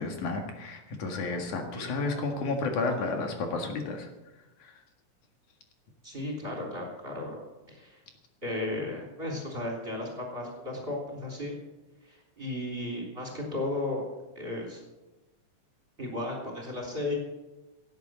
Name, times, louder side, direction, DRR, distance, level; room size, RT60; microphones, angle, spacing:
voice 1, 0.0-4.1 4.6-4.8, left 3 dB, 75° left, 3 dB, 3.3 m, -32 dB
voice 2, 1.7-2.2 6.0-7.3 7.7-8.0 8.4-11.5 12.0-14.1 14.4-14.8 16.0-17.2, left 2 dB, 15° right, 0 dB, 3.8 m, -35 dB
17.5 x 9.2 x 7.6 m, 1.1 s
omnidirectional pair, 3.5 m